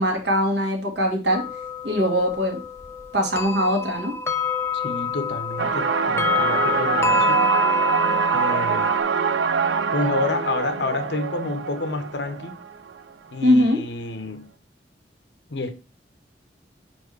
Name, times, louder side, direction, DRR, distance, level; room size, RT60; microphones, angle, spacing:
voice 1, 0.0-1.4 1.8-2.6 3.1-4.2 13.4-13.8, equal, 70° right, 2.0 m, -21 dB
sound 1, 1.3-9.0, left 2 dB, 15° left, 0.5 m, -26 dB
voice 2, 4.7-7.4 8.3-8.9 9.9-12.6 13.3-14.5 15.5-15.7, left 2 dB, 75° left, 1.0 m, -29 dB
sound 2, 5.6-13.1, right 6 dB, 85° right, 0.5 m, -25 dB
5.2 x 4.6 x 4.7 m
head